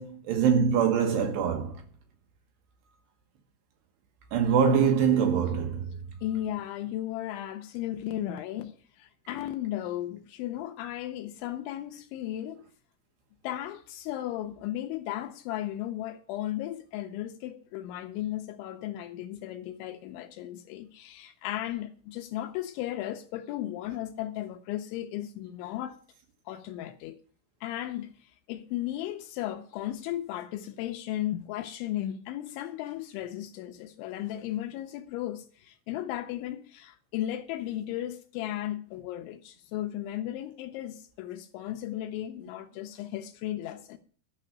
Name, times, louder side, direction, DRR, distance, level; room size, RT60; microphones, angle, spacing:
voice 1, 0.0-1.8 4.3-5.9, right 7 dB, 70° right, 2.9 m, -24 dB
voice 2, 6.2-12.6 13.4-26.0 26.5-27.2 27.6-44.0, left 13 dB, 80° left, 2.9 m, -35 dB
12.0 x 5.8 x 8.9 m
omnidirectional pair, 5.9 m